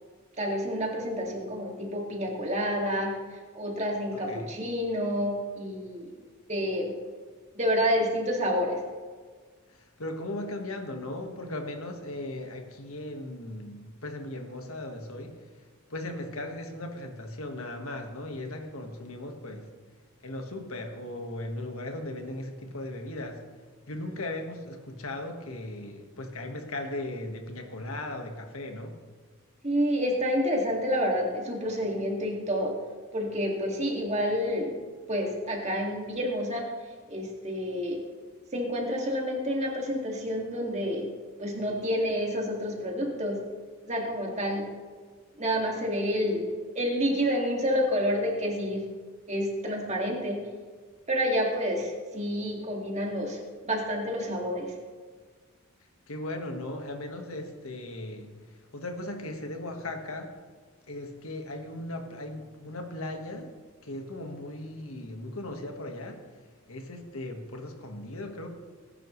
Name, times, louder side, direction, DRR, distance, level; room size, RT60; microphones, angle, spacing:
voice 1, 0.4-3.1 3.5-6.1 6.5-6.9 7.5-8.8 29.6-32.8 33.1-34.7 35.1-36.7 37.1-38.0 38.5-41.1 41.4-43.4 43.8-44.6 45.4-46.5 46.7-48.8 49.3-50.4 51.1-53.4 53.6-54.7, equal, 30° right, 0 dB, 2.3 m, -29 dB
voice 2, 4.1-4.5 9.7-15.4 15.9-19.7 20.2-23.4 23.9-28.9 56.1-58.3 58.7-60.3 60.9-63.5 63.8-66.2 66.7-68.5, left 1 dB, 70° left, 4 dB, 1.7 m, -37 dB
19.5 x 11.0 x 3.3 m, 1.5 s
head